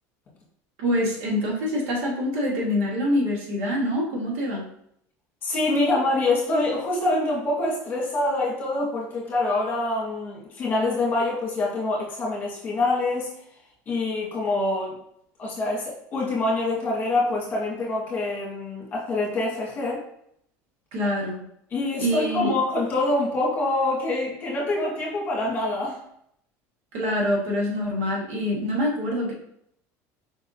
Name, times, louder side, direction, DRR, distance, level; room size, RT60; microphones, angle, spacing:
voice 1, 0.8-4.6 20.9-21.4 22.0-22.5 26.9-29.3, left 1 dB, 80° right, -2 dB, 1.7 m, -25 dB
voice 2, 5.4-13.3 13.9-15.0 15.4-20.0 21.7-26.0, left 2 dB, 30° left, -4 dB, 1.6 m, -25 dB
5.0 x 3.6 x 2.7 m, 0.71 s
cardioid pair, 155°, 7 cm